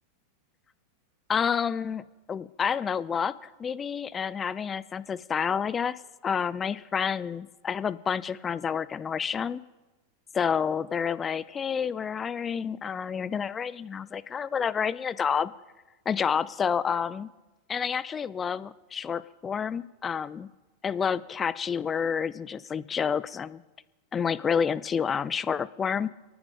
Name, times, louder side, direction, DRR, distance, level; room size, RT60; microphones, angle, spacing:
voice 1, 1.3-9.6 10.3-15.5 16.1-17.3 17.7-20.5 20.8-23.6 24.1-26.1, left 7 dB, 25° left, 17 dB, 0.5 m, -29 dB
28.0 x 9.5 x 3.8 m, 1.1 s
hypercardioid pair, 100°, 0 cm